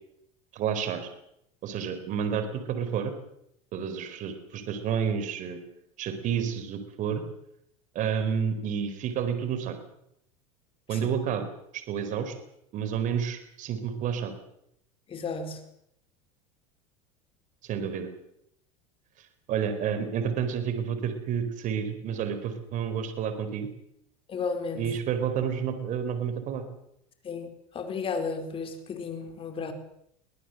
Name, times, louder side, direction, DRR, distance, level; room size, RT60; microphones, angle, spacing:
voice 1, 0.5-1.0 1.6-3.1 3.7-5.6 6.0-7.2 7.9-9.8 10.9-11.5 11.7-12.3 12.7-14.3 17.6-18.1 19.5-23.7 24.7-26.6, right 7 dB, 45° right, 9 dB, 4.4 m, -30 dB
voice 2, 15.1-15.6 24.3-24.9 27.2-27.5 27.7-29.7, left 4 dB, 30° left, 7 dB, 4.6 m, -33 dB
22.5 x 19.0 x 7.9 m, 0.75 s
supercardioid pair, 115°, 17 cm